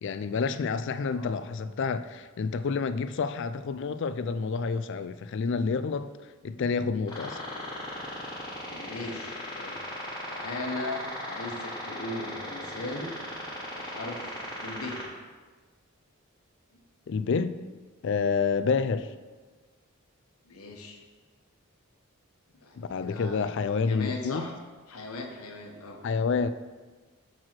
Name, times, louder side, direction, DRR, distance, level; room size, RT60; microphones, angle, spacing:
voice 1, 0.0-6.1 6.4-7.4 17.1-17.6 18.0-19.1 22.8-24.5 26.0-26.5, left 5 dB, 55° left, 12 dB, 0.3 m, -28 dB
voice 2, 1.1-1.4 8.7-9.8 10.3-13.1 13.7-15.0 16.7-16.8 20.5-21.0 22.6-23.5 23.9-24.5 24.9-26.0, left 2 dB, 75° left, 2 dB, 1.1 m, -38 dB
sound 1, 7.1-15.1, left 1 dB, 20° left, 1.3 m, -38 dB
6.1 x 4.7 x 5.9 m, 1.4 s
head